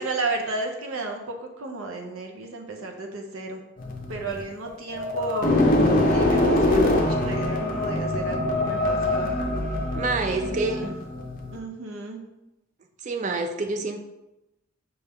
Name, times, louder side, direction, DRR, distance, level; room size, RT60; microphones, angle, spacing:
voice 1, 0.0-3.6 4.1-5.8 6.1-9.4 9.7-9.8 10.2-10.9 11.5-12.2, right 3 dB, 65° right, 2 dB, 0.6 m, -33 dB
sound 1, 3.8-11.6, left 1 dB, 40° left, 0.5 m, -24 dB
voice 2, 10.0-11.0 13.0-14.0, right 3 dB, 35° right, 6 dB, 0.3 m, -27 dB
5.4 x 2.3 x 3.5 m, 0.97 s
head